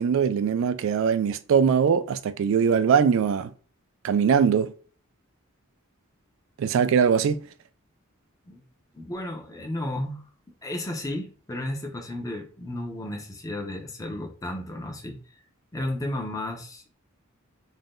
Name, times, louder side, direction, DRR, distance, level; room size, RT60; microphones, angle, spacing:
voice 1, 0.0-3.5 4.0-4.7 6.6-7.4, right 7 dB, 65° right, 0.3 m, -21 dB
voice 2, 8.9-10.2 10.6-15.2 15.7-17.0, left 1 dB, 15° left, 0.5 m, -33 dB
2.6 x 2.2 x 3.4 m
head